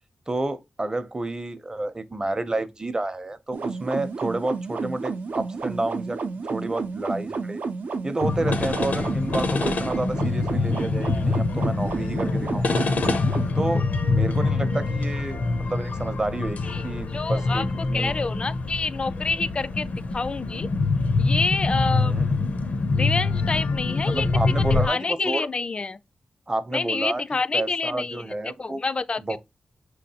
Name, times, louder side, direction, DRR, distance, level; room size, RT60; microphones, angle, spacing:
voice 1, 0.3-6.2 6.5-7.6 8.0-12.8 13.5-18.2 21.9-22.4 24.1-25.5 26.5-27.2 27.5-28.8 29.2-29.4, right 2 dB, 25° right, 0.6 m, -30 dB
sound 1, 3.5-13.5, right 4 dB, 80° right, 0.6 m, -31 dB
sound 2, 8.2-24.9, left 3 dB, 80° left, 0.6 m, -25 dB
voice 2, 17.1-20.7 21.2-22.2 22.9-24.3 24.7-26.0 26.7-29.4, left 4 dB, 40° left, 0.3 m, -28 dB
5.8 x 3.1 x 2.8 m
wide cardioid pair, 85°, 3 cm